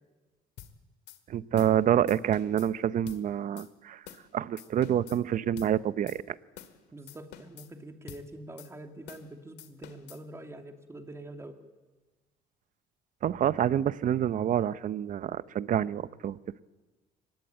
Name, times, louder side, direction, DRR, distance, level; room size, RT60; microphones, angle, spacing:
sound 1, 0.6-0.7 1.1-1.2 1.6-1.8 2.1-2.7 3.1-3.2 3.6-3.7 4.1-4.3 4.6-5.2 5.6-5.7 6.1-6.2 6.6-6.8 7.1-7.7 8.1-8.2 8.6-8.7 9.1-9.3 9.6-10.2, left 11 dB, 80° left, 2.1 m, -48 dB
voice 1, 1.3-4.0 4.3-6.2 13.2-16.4, right 10 dB, 50° right, 16 dB, 0.8 m, -27 dB
voice 2, 6.9-11.6, right 1 dB, 15° right, 5 dB, 2.6 m, -45 dB
23.5 x 19.5 x 9.1 m, 1.2 s
cardioid pair, 110°, 17 cm